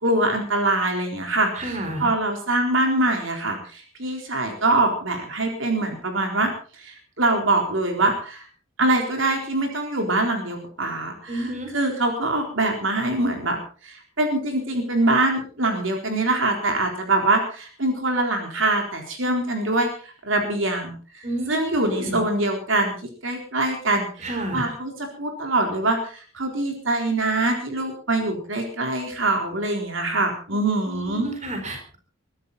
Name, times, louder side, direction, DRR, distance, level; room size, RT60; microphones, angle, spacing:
voice 1, 0.0-6.5 6.8-8.5 8.8-11.5 11.7-13.6 13.8-23.0 23.2-24.9 25.2-31.3, right 2 dB, 65° right, 3 dB, 4.0 m, -24 dB
voice 2, 1.5-2.1 11.3-11.7 21.2-22.2 24.2-24.6 30.8-32.0, right 1 dB, 35° right, 4 dB, 4.3 m, -30 dB
23.0 x 12.5 x 4.2 m, 0.40 s
head